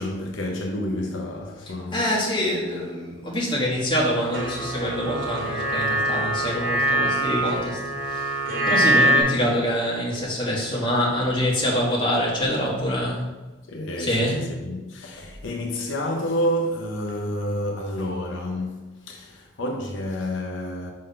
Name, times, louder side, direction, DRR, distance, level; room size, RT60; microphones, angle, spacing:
voice 1, 0.0-2.1 13.7-20.9, equal, 80° left, 0.8 m, -29 dB
voice 2, 1.9-13.3 14.0-14.4, equal, 25° left, 1.7 m, -25 dB
sound 1, 4.3-9.2, right 1 dB, 85° right, 1.9 m, -23 dB
5.2 x 3.9 x 5.6 m
head